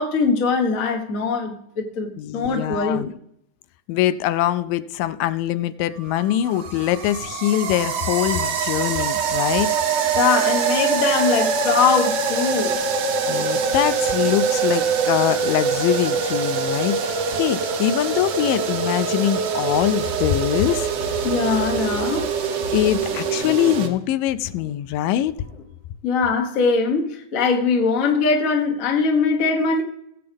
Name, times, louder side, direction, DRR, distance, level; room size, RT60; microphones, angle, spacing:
voice 1, 0.0-3.1 10.1-12.8 21.2-22.3 26.0-29.8, left 4 dB, 45° left, 1.0 m, -21 dB
voice 2, 2.2-3.1 3.9-9.7 13.3-20.9 22.7-25.3, left 12 dB, 85° left, 2.2 m, -23 dB
sound 1, 6.0-23.9, right 5 dB, 65° right, 1.7 m, -24 dB
sound 2, 20.1-25.7, left 3 dB, 65° left, 3.7 m, -37 dB
19.5 x 7.9 x 3.5 m
omnidirectional pair, 3.9 m